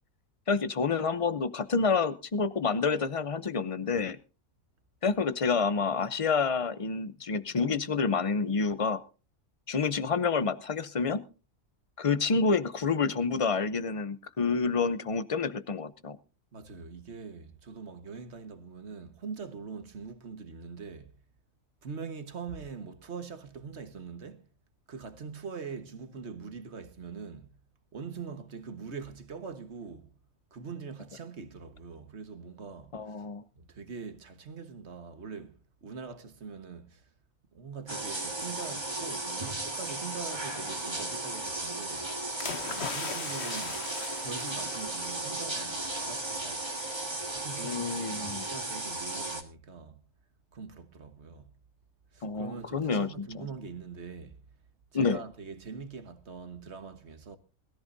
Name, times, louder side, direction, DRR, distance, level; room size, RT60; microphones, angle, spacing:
voice 1, 0.5-4.2 5.0-9.0 9.7-11.2 12.0-16.2 32.9-33.4 47.6-48.4 52.2-53.5 54.9-55.2, left 5 dB, 35° left, 0.6 m, -28 dB
voice 2, 16.5-21.2 21.8-24.5 24.9-27.6 27.9-30.1 30.5-33.2 33.6-37.1 37.5-42.1 42.9-43.8 44.2-46.7 47.3-50.0 50.5-51.5 52.1-54.5 54.9-57.4, right 5 dB, 55° right, 1.6 m, -43 dB
sound 1, 37.9-49.4, right 2 dB, 20° right, 1.8 m, -35 dB
sound 2, 42.4-45.4 45.8-46.0, left 5 dB, 55° left, 1.4 m, -39 dB
21.5 x 14.0 x 2.7 m
omnidirectional pair, 1.4 m